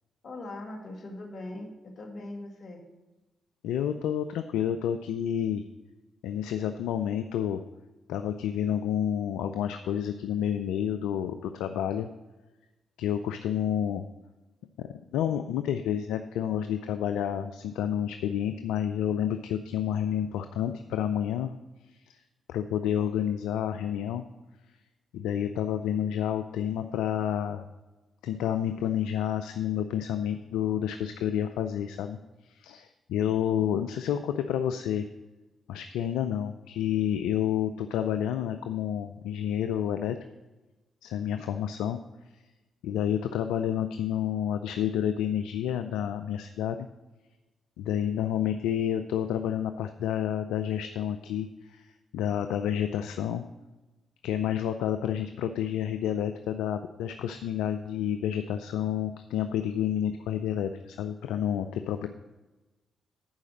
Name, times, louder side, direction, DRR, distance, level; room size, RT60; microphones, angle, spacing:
voice 1, 0.2-2.8, left 2 dB, 60° left, 1 dB, 2.1 m, -41 dB
voice 2, 3.6-5.6 6.2-7.6 8.1-12.1 13.0-14.0 14.8-21.5 21.9-22.2 22.5-24.2 25.1-27.7 28.2-32.2 32.4-35.1 35.7-40.2 41.0-42.0 42.8-46.9 47.8-51.9 52.1-53.4 54.2-62.1, left 9 dB, 80° left, 8 dB, 0.4 m, -29 dB
11.0 x 4.9 x 6.3 m, 1.1 s
hypercardioid pair, 45°, 0 cm